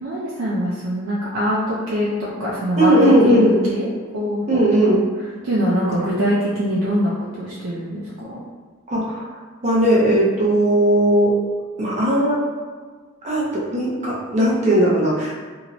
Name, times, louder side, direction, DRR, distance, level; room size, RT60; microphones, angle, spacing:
voice 1, 0.0-3.0 3.2-3.9 4.1-5.0 5.4-8.4, equal, 80° right, -7 dB, 0.5 m, -23 dB
voice 2, 2.8-3.5 4.5-5.0 8.9-9.3 9.6-11.3 11.8-12.4 13.2-15.4, right 1 dB, 35° right, -5 dB, 0.8 m, -17 dB
2.8 x 2.6 x 2.9 m, 1.5 s
head